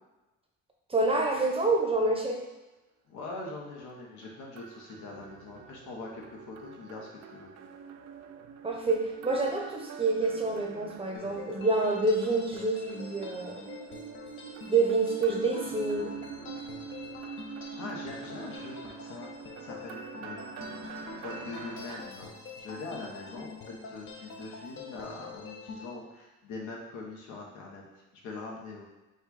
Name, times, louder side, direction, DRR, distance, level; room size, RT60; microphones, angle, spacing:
voice 1, 0.9-2.4 8.6-13.6 14.7-16.1, right 3 dB, 20° right, 1 dB, 0.7 m, -27 dB
voice 2, 3.1-7.5 17.8-19.3 19.6-20.9 21.2-22.3 22.6-23.6 23.8-28.9, left 3 dB, 80° left, -1 dB, 1.1 m, -42 dB
sound 1, 3.9-22.0, right 7 dB, 60° right, 0.4 m, -45 dB
sound 2, 11.1-25.9, left 4 dB, 45° left, 0.6 m, -45 dB
5.4 x 2.3 x 3.9 m, 1.1 s
cardioid pair, 105°, 29 cm